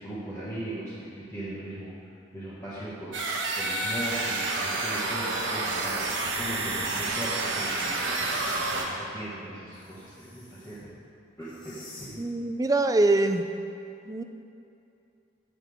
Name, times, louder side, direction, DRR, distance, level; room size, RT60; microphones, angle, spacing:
voice 1, 0.0-1.9 2.3-3.2 3.6-6.0 6.3-10.8 11.4-12.2, right 1 dB, 15° left, -12 dB, 1.5 m, -38 dB
sound 1, 3.1-8.9, right 2 dB, 80° right, 1.1 m, -29 dB
sound 2, 8.0-8.6 9.7-10.9 11.4-12.1, left 3 dB, 45° left, 2.3 m, -47 dB
voice 2, 12.2-13.5 14.1-14.2, right 2 dB, 20° right, 7 dB, 0.3 m, -23 dB
15.5 x 6.0 x 3.5 m, 2.6 s
head